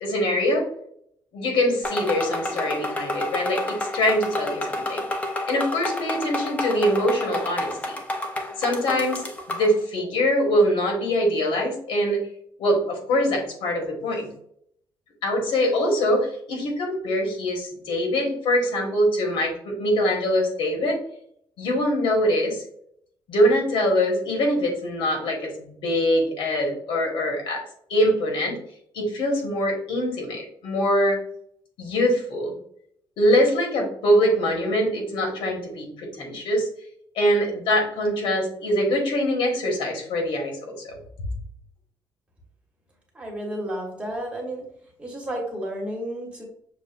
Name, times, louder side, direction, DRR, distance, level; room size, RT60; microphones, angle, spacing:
voice 1, 0.0-0.6 1.3-5.0 5.5-7.7 8.6-12.2 12.6-14.3 15.2-21.0 21.6-22.6 23.3-27.6 27.9-28.6 28.9-31.2 31.8-32.5 33.2-36.7 37.1-41.0, equal, 90° left, 1 dB, 1.4 m, -23 dB
sound 1, 1.8-9.7, left 1 dB, 15° left, 0.6 m, -30 dB
voice 2, 43.1-44.6 45.0-46.4, right 1 dB, 15° right, -1 dB, 1.2 m, -32 dB
6.3 x 2.4 x 2.5 m, 0.67 s
cardioid pair, 160°, 9 cm